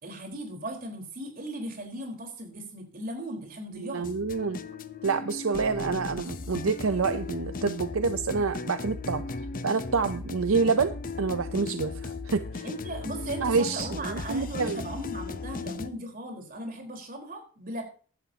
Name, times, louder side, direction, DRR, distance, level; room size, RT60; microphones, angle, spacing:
voice 1, 0.0-4.1 12.6-17.8, right 1 dB, 40° right, 2 dB, 4.3 m, -37 dB
voice 2, 3.8-4.6 5.0-9.2 9.6-12.7 13.4-14.8, right 4 dB, 75° right, 10 dB, 0.6 m, -28 dB
sound 1, 4.0-15.9, left 3 dB, 40° left, 0.7 m, -36 dB
16.0 x 11.5 x 2.9 m, 0.41 s
head